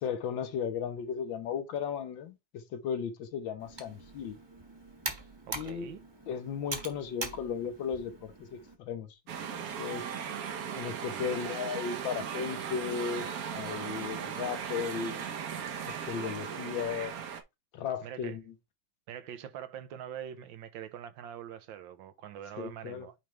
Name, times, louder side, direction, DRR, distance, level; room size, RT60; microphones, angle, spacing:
voice 1, 0.0-4.4 5.5-6.0 6.3-10.1 10.8-15.3 15.9-17.2 17.7-18.5 22.6-23.1, left 7 dB, 75° left, 1.7 m, -36 dB
Computer keyboard, 3.6-8.7, right 2 dB, 15° right, 1.1 m, -42 dB
voice 2, 5.5-6.0 11.1-11.3 18.0-18.4 19.1-23.1, right 10 dB, 80° right, 1.5 m, -44 dB
sound 1, 9.3-17.4, right 7 dB, 60° right, 1.1 m, -37 dB
9.0 x 3.5 x 3.1 m
omnidirectional pair, 2.1 m